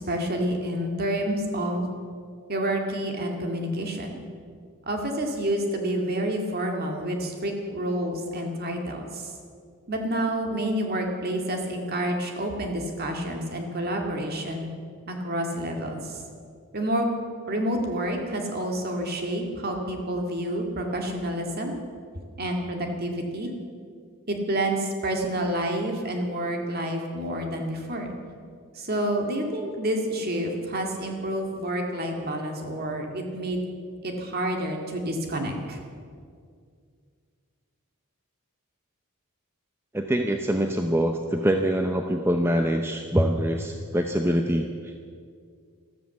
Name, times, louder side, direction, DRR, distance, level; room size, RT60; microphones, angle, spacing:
voice 1, 0.0-1.9 2.5-4.2 4.9-9.3 9.9-14.7 15.1-16.2 16.7-17.1 17.5-21.8 22.4-23.5 24.3-28.1 28.7-33.6 34.0-35.8, right 1 dB, 45° right, 2 dB, 2.2 m, -29 dB
voice 2, 39.9-44.9, equal, 10° right, 4 dB, 0.6 m, -24 dB
14.0 x 13.5 x 7.2 m, 2.1 s
head